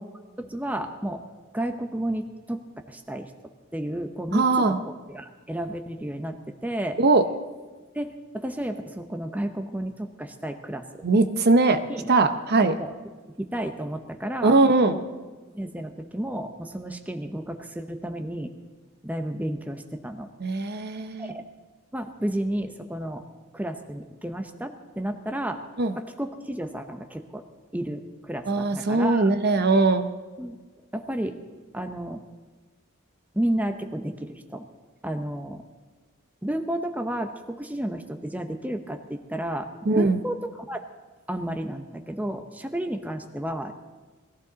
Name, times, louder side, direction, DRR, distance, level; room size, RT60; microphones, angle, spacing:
voice 1, 0.4-1.2 1.5-2.6 2.9-3.3 3.7-7.0 7.9-11.0 11.9-12.1 12.8-13.0 13.4-14.6 14.9-15.0 15.5-18.5 19.0-20.3 21.2-21.5 21.9-23.3 23.5-25.6 25.9-27.4 27.7-29.3 30.4-30.6 30.9-31.4 31.7-32.2 33.3-34.7 35.0-35.6 36.4-40.8 41.3-43.8, right 1 dB, 5° right, 6 dB, 0.7 m, -32 dB
voice 2, 4.3-4.8 7.0-7.2 11.0-11.8 12.1-12.7 14.4-15.0 20.4-21.3 25.8-25.9 28.5-30.1 39.9-40.2, right 3 dB, 50° right, 9 dB, 0.8 m, -20 dB
20.0 x 14.5 x 4.0 m, 1.3 s
head